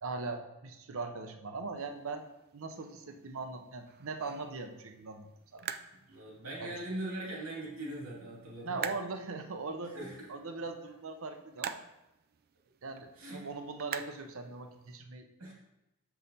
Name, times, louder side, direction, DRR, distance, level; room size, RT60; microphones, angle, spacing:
voice 1, 0.0-2.3 2.5-5.7 6.6-6.7 8.6-10.0 10.3-11.8 12.8-15.3, right 3 dB, 70° right, 7 dB, 0.7 m, -40 dB
sound 1, 1.8-15.0, right 8 dB, 45° right, 0.4 m, -47 dB
voice 2, 5.9-8.9 9.9-10.3 13.2-13.4 15.4-15.5, right 1 dB, 90° right, -4 dB, 2.3 m, -41 dB
7.0 x 5.6 x 4.1 m, 0.95 s
head